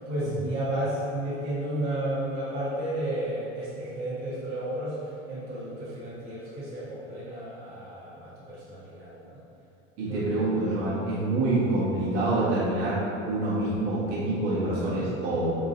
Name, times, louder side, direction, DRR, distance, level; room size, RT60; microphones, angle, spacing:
voice 1, 0.1-5.0 5.3-9.4 10.1-10.2, right 1 dB, 65° right, -10 dB, 1.4 m, -32 dB
voice 2, 10.0-15.6, right 2 dB, 50° right, -9 dB, 1.5 m, -26 dB
4.5 x 3.8 x 2.7 m, 2.7 s
figure-of-eight pair, 80°, 38 cm